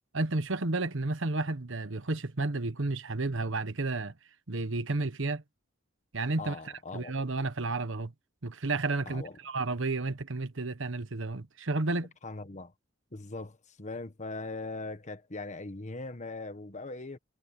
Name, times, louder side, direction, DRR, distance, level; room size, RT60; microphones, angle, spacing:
voice 1, 0.1-4.1 4.5-5.4 6.1-6.6 6.9-8.1 8.4-12.1, right 2 dB, 65° right, 1.2 m, -31 dB
voice 2, 6.4-7.1 9.0-9.4 12.2-12.7 13.1-17.2, left 3 dB, 35° left, 1.4 m, -40 dB
head